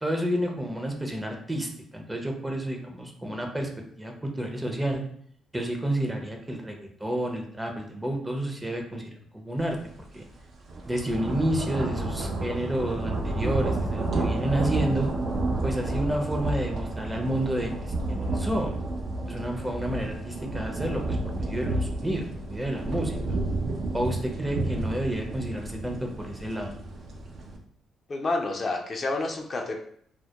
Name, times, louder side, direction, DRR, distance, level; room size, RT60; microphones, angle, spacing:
voice 1, 0.0-3.7 4.0-5.0 5.5-9.8 10.1-10.2 10.9-15.1 15.6-18.8 19.2-23.4 23.9-26.8, right 1 dB, 15° right, 2 dB, 0.5 m, -30 dB
sound 1, 9.8-9.9 10.3-27.6, right 2 dB, 65° right, 0.4 m, -31 dB
voice 2, 28.1-29.8, left 2 dB, 45° left, 2 dB, 0.4 m, -29 dB
2.1 x 2.1 x 2.8 m, 0.62 s
supercardioid pair, 60°, 0 cm